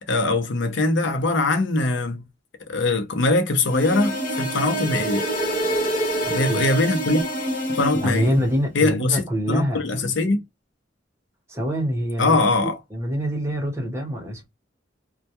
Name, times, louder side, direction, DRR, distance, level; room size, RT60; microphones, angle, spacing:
voice 1, 0.1-2.2 2.7-5.2 6.3-7.2 7.7-8.3 8.7-10.4 12.2-12.8, left 2 dB, 75° left, 0.6 m, -22 dB
sound 1, 3.7-8.5, right 1 dB, 45° left, 0.9 m, -26 dB
voice 2, 7.9-9.8 11.5-14.5, equal, 15° right, 0.8 m, -25 dB
2.2 x 2.1 x 2.8 m
head